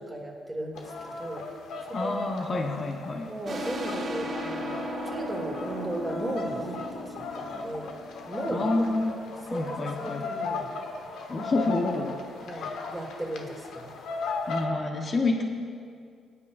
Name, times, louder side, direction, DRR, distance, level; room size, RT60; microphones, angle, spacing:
voice 1, 0.0-1.5 2.0-2.6 3.3-7.9 8.3-8.9 9.5-10.7 12.4-13.9, right 1 dB, 5° right, -2 dB, 2.5 m, -36 dB
sound 1, 0.7-14.6, left 3 dB, 80° left, 1.2 m, -37 dB
voice 2, 1.9-3.3 8.5-9.1 9.5-10.2 11.3-12.1 12.5-12.7 14.5-15.4, left 2 dB, 40° left, 2 dB, 1.1 m, -28 dB
sound 2, 3.4-8.8, equal, 50° right, 1.7 m, -36 dB
19.0 x 9.8 x 2.6 m, 2.2 s
cardioid pair, 90°, 0 cm